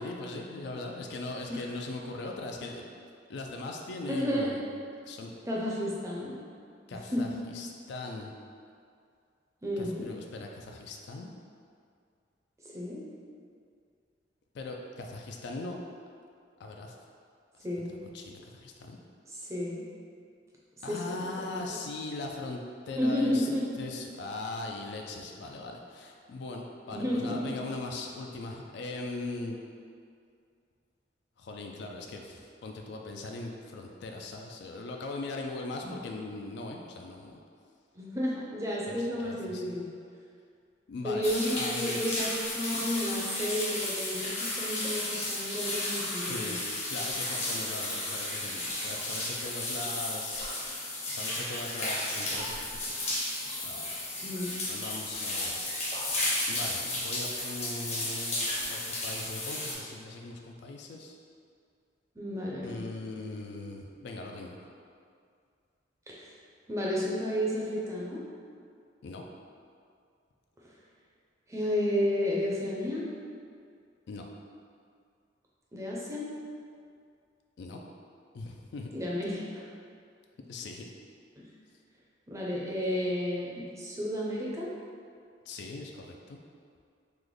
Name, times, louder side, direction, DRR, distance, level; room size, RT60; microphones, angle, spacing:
voice 1, 0.0-2.8 3.3-4.6 5.1-5.3 6.9-8.3 9.8-11.3 14.5-15.8 16.6-17.0 17.5-17.7 18.1-19.0 20.8-23.5 23.8-29.6 31.4-37.4 38.9-39.8 40.9-41.2 41.5-42.0 46.3-46.6 46.9-50.4 51.1-54.1 54.7-55.7 56.5-61.2 62.6-64.6 69.0-69.2 74.1-74.3 77.6-77.8 78.3-78.9 80.5-80.9 85.5-86.4, left 2 dB, 65° left, 2 dB, 0.3 m, -40 dB
voice 2, 4.1-4.5 5.5-6.4 7.1-7.2 9.6-10.1 12.7-13.0 17.6-18.0 19.3-19.8 20.9-21.8 23.0-23.7 26.9-27.6 35.8-36.0 37.9-39.9 41.0-46.6 54.2-54.6 62.2-62.9 66.1-66.2 66.7-68.2 71.5-73.0 75.7-76.3 78.9-79.6 81.4-81.5 82.3-84.7, left 1 dB, 15° right, -5 dB, 0.5 m, -32 dB
sound 1, 41.2-59.7, left 1 dB, 40° left, 0.7 m, -33 dB
3.2 x 2.1 x 3.7 m, 2.3 s
head